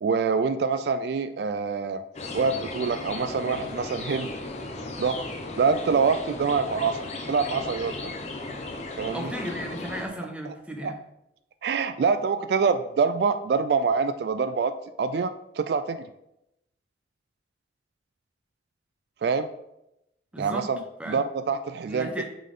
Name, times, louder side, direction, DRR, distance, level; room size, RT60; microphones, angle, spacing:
voice 1, 0.0-2.0 2.3-4.3 5.0-5.3 5.6-8.1 9.0-9.3 10.8-10.9 11.6-14.7 15.0-16.1 19.2-19.5 20.4-22.2, right 5 dB, 65° right, 11 dB, 0.3 m, -25 dB
sound 1, 2.1-10.1, left 2 dB, 40° left, 0.8 m, -36 dB
voice 2, 9.1-11.0 20.3-20.7 21.0-21.2 21.9-22.2, equal, 5° right, 3 dB, 0.7 m, -35 dB
8.2 x 4.1 x 3.7 m, 0.86 s
head